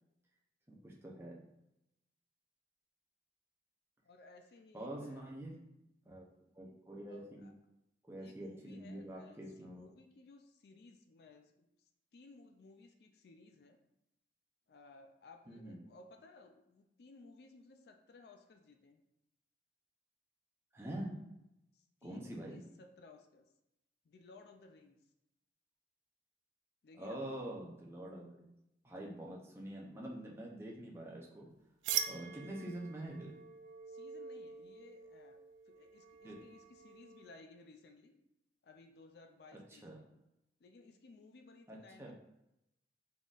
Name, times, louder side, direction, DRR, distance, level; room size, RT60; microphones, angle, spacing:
voice 1, 0.7-1.4 4.7-5.5 6.0-6.3 6.5-7.5 8.1-9.9 15.5-15.8 20.7-21.2 22.0-22.6 27.0-28.5 28.8-31.5 32.1-33.4 36.2-36.4 39.7-40.0 41.7-42.1, right 1 dB, 15° right, -2 dB, 0.6 m, -45 dB
voice 2, 4.0-5.2 7.1-7.5 8.2-13.8 14.7-19.0 21.7-23.5 24.0-25.0 26.8-27.4 33.9-35.4 35.7-38.1 38.6-40.1 40.6-42.1, left 3 dB, 60° left, 4 dB, 0.4 m, -59 dB
sound 1, 31.8-37.4, right 9 dB, 85° right, 0.3 m, -43 dB
3.8 x 3.7 x 2.4 m, 0.87 s
head